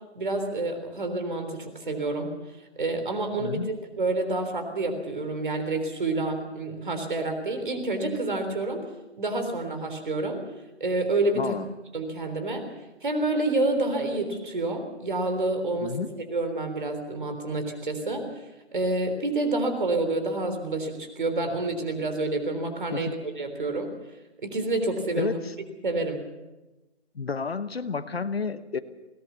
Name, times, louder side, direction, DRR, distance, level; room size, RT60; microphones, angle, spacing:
voice 1, 0.2-2.3 2.8-8.8 9.2-10.4 10.8-11.6 11.9-12.7 13.0-16.0 16.3-18.3 18.7-23.9 24.4-25.4 25.8-26.2, right 2 dB, 45° right, 7 dB, 3.7 m, -28 dB
voice 2, 3.4-3.7 11.3-11.7 15.8-16.1 22.9-23.1 25.2-25.5 27.1-28.8, left 5 dB, 60° left, 12 dB, 1.2 m, -31 dB
21.5 x 18.0 x 7.0 m, 1.1 s
hypercardioid pair, 175°, 34 cm